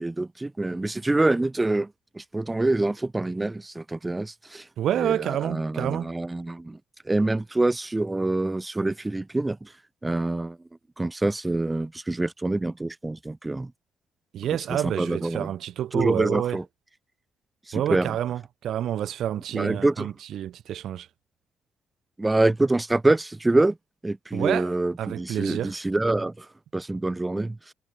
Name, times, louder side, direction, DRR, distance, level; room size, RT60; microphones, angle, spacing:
voice 1, 0.0-4.7 5.0-6.8 7.0-9.7 10.0-10.6 11.0-13.7 14.7-15.5 15.9-16.6 17.7-18.1 19.5-20.1 22.2-23.8 24.0-27.7, right 2 dB, 15° right, 3.1 m, -26 dB
voice 2, 4.8-6.1 14.3-16.6 17.7-21.1 24.3-25.8, right 11 dB, 70° right, 5.8 m, -28 dB
cardioid pair, 90°, 0 cm